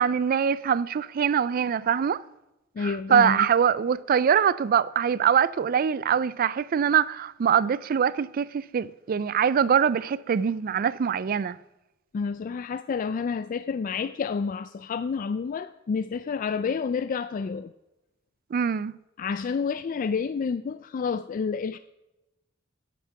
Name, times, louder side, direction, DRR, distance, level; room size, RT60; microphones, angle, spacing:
voice 1, 0.0-2.2 2.8-11.6 18.5-18.9, right 7 dB, 45° right, 0.3 m, -23 dB
voice 2, 2.8-3.5 12.1-17.7 19.2-21.8, left 5 dB, 40° left, 0.3 m, -29 dB
9.2 x 8.5 x 5.8 m
head